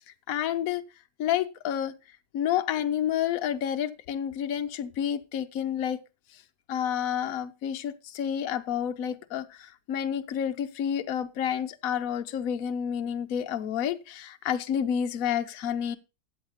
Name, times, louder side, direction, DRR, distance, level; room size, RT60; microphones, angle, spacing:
voice 1, 0.1-0.8 1.2-1.9 2.3-6.0 6.7-16.0, left 9 dB, 60° left, 1.2 m, -29 dB
13.5 x 8.2 x 4.1 m
omnidirectional pair, 1.8 m